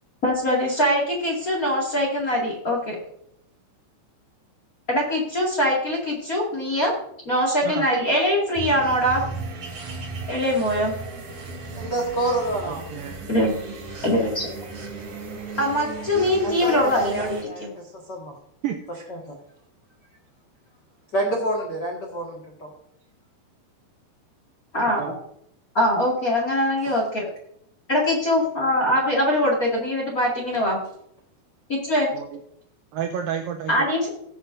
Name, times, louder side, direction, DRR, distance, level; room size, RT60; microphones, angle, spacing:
voice 1, 0.2-3.0 4.9-6.9 7.2-9.2 10.3-10.9 13.3-13.5 14.0-14.5 15.6-17.7 24.7-25.0 25.7-27.2 27.9-30.8 31.7-32.1 33.7-34.1, equal, 35° left, -2 dB, 1.5 m, -22 dB
sound 1, 8.6-17.4, right 3 dB, 45° right, 3.4 m, -36 dB
voice 2, 11.8-12.8 16.4-17.6 18.1-18.3 19.1-19.2 21.1-22.4, right 1 dB, 75° left, -1 dB, 0.9 m, -27 dB
voice 3, 12.7-13.2 18.6-19.0 25.0-25.1 32.1-32.3 32.9-33.7, right 8 dB, 90° right, 5 dB, 2.0 m, -30 dB
17.0 x 7.9 x 2.6 m, 0.72 s
omnidirectional pair, 4.9 m